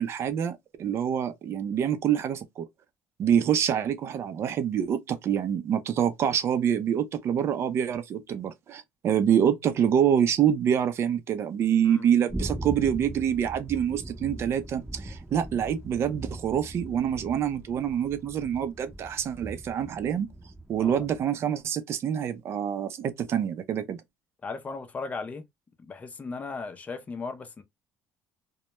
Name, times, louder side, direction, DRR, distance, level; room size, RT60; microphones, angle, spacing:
voice 1, 0.0-2.7 3.2-20.3 20.7-24.0, right 9 dB, 50° right, 0.5 m, -26 dB
sound 1, 12.3-21.2, right 1 dB, 10° right, 0.7 m, -40 dB
voice 2, 24.4-25.4 25.8-27.6, left 4 dB, 25° left, 0.5 m, -37 dB
2.1 x 2.1 x 2.9 m
cardioid pair, 105°, 6 cm